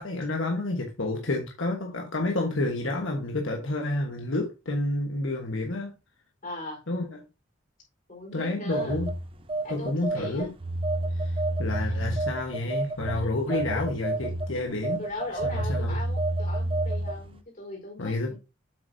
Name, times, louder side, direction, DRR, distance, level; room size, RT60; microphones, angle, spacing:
voice 1, 0.0-5.9 6.9-7.2 8.3-9.1 9.7-10.5 11.2-15.0 15.4-16.0 18.0-18.3, left 2 dB, 85° left, 1.3 m, -30 dB
voice 2, 6.4-6.8 8.1-9.0 9.6-10.5 11.9-12.0 13.1-13.6 15.0-18.3, left 1 dB, 45° left, 4.5 m, -39 dB
Telephone, 8.7-17.3, right 2 dB, 30° right, 0.6 m, -29 dB
8.3 x 6.3 x 2.7 m
head